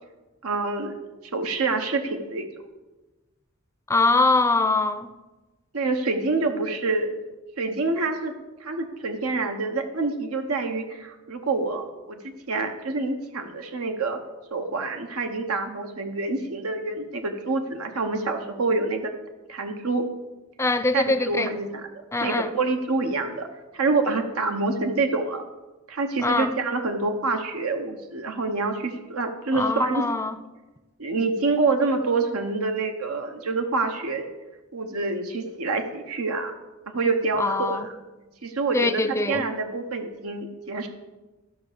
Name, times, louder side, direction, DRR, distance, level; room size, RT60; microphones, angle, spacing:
voice 1, 0.4-1.0 1.3-2.5 5.7-7.1 7.6-8.3 8.6-14.2 14.5-19.1 19.5-20.1 20.9-21.7 22.2-23.5 23.7-25.4 25.9-30.0 31.0-34.3 34.7-36.5 36.9-37.9 38.4-40.9, right 3 dB, 90° right, 1.0 m, -26 dB
voice 2, 3.9-5.1 20.6-21.5 22.1-22.5 26.2-26.5 29.5-30.4 37.4-37.9 38.7-39.5, left 3 dB, 15° left, 0.4 m, -23 dB
14.0 x 5.8 x 6.7 m
head